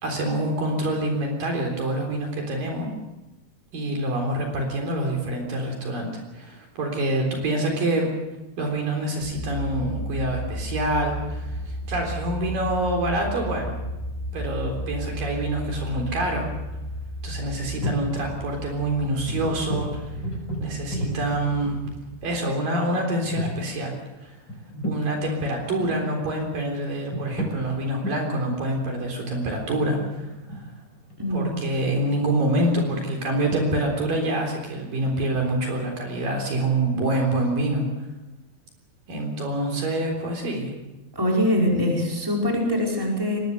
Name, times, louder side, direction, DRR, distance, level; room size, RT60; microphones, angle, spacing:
voice 1, 0.0-2.9 3.7-8.1 8.6-13.8 14.3-16.5 17.2-20.0 20.6-21.8 22.2-24.0 24.2-24.4 24.8-30.6 31.3-37.8 39.1-40.7, right 1 dB, 60° right, 1 dB, 5.3 m, -26 dB
sound 1, 9.2-22.4, equal, 80° right, 6.7 m, -34 dB
sound 2, 13.9-14.7 16.5-16.6 16.8-17.0 17.6-18.2 18.5-18.6 19.0-22.2 22.7-22.8 23.2-23.6 24.5-25.1 25.6-26.1 26.8-27.6 28.0-28.2 28.8-31.8 32.2-33.6, equal, 25° left, 6.8 m, -33 dB
voice 2, 31.2-31.6 41.1-43.4, equal, 5° right, -1 dB, 4.7 m, -23 dB
23.0 x 20.0 x 6.7 m, 1.0 s
omnidirectional pair, 4.6 m